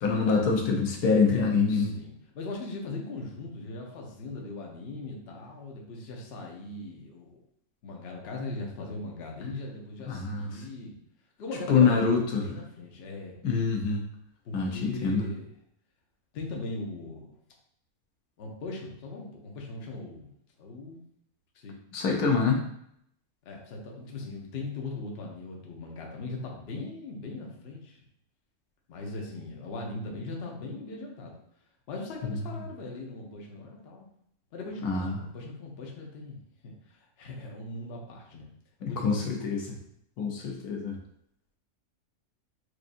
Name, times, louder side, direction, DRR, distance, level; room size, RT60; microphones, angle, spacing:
voice 1, 0.0-2.0 10.1-10.6 11.7-12.5 13.4-14.1 14.5-15.2 21.9-22.6 34.8-35.2 38.8-39.8 40.2-41.0, left 5 dB, 90° left, 1 dB, 1.2 m, -25 dB
voice 2, 1.7-7.4 7.8-10.9 11.4-13.4 14.4-15.5 16.3-17.3 18.4-20.3 20.6-21.0 21.5-21.8 23.5-28.0 28.9-31.4 31.9-34.1 34.5-38.5 38.8-39.2, left 2 dB, 50° left, -1 dB, 0.9 m, -39 dB
4.7 x 2.6 x 2.6 m, 0.71 s
omnidirectional pair, 1.5 m